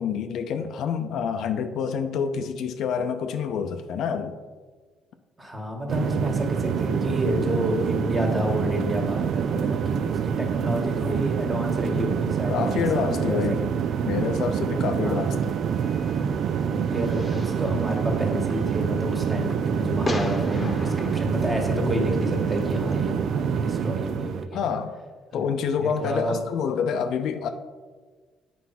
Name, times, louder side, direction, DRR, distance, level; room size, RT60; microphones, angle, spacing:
voice 1, 0.0-4.4 12.5-13.6 14.0-15.6 24.5-25.0 25.3-27.5, left 7 dB, 70° left, 7 dB, 0.6 m, -27 dB
voice 2, 5.4-13.6 15.0-15.3 16.7-24.7 25.3-25.4 25.8-26.4, equal, 20° right, 2 dB, 1.8 m, -29 dB
sound 1, 5.9-24.5, right 7 dB, 60° right, 0.4 m, -26 dB
Fireworks, 15.1-23.0, left 2 dB, 20° left, 1.1 m, -38 dB
8.3 x 4.6 x 5.9 m, 1.4 s
cardioid pair, 110°, 0 cm